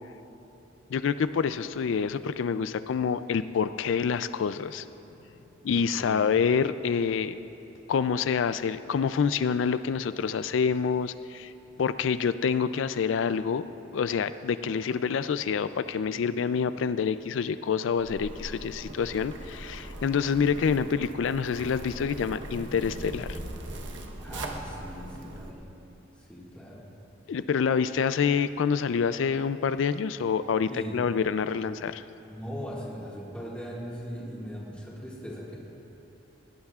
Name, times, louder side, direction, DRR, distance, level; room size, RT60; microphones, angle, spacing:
voice 1, 0.9-4.8 5.6-7.4 7.9-11.5 11.8-13.6 13.9-23.4 27.3-32.0, left 6 dB, 80° left, 13 dB, 0.4 m, -27 dB
voice 2, 5.6-6.2 24.2-25.7 26.2-26.9 30.7-31.0 32.3-35.6, equal, 5° left, -5 dB, 1.8 m, -39 dB
Zipper (clothing), 18.0-25.5, right 1 dB, 70° right, 1.0 m, -40 dB
20.0 x 16.5 x 2.4 m, 2.9 s
head